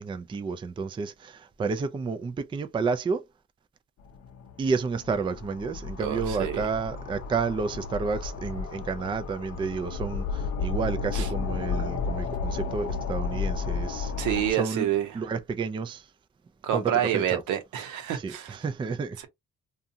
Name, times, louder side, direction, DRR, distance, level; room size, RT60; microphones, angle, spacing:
voice 1, 0.0-3.3 4.6-14.1 14.5-14.9 15.1-16.1 16.7-17.4 18.1-19.3, right 5 dB, 15° right, 0.3 m, -30 dB
sound 1, 4.0-14.5, left 5 dB, 55° left, 0.6 m, -32 dB
voice 2, 6.0-6.7 11.1-11.3 14.2-15.1 16.6-18.5, right 10 dB, 90° right, 0.8 m, -28 dB
2.6 x 2.4 x 2.5 m
cardioid pair, 90°, 30 cm